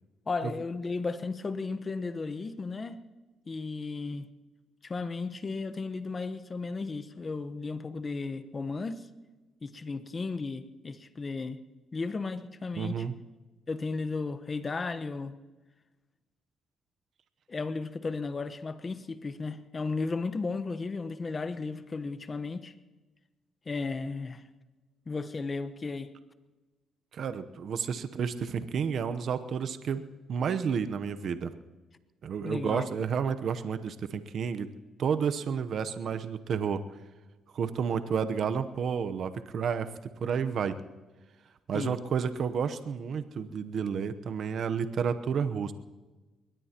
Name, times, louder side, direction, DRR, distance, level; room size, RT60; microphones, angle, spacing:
voice 1, 0.3-3.0 3.5-4.3 4.8-9.0 9.6-11.6 11.9-13.1 13.7-15.3 17.5-22.7 23.7-24.4 25.1-26.1 32.4-32.9 41.7-42.0, left 4 dB, 30° left, 12 dB, 1.1 m, -34 dB
voice 2, 12.8-13.2 27.1-30.0 30.3-31.5 32.2-34.7 35.0-36.8 37.5-40.8 41.7-45.7, right 6 dB, 60° right, 10 dB, 0.9 m, -31 dB
22.5 x 19.5 x 3.0 m, 1.2 s
cardioid pair, 90°, 0 cm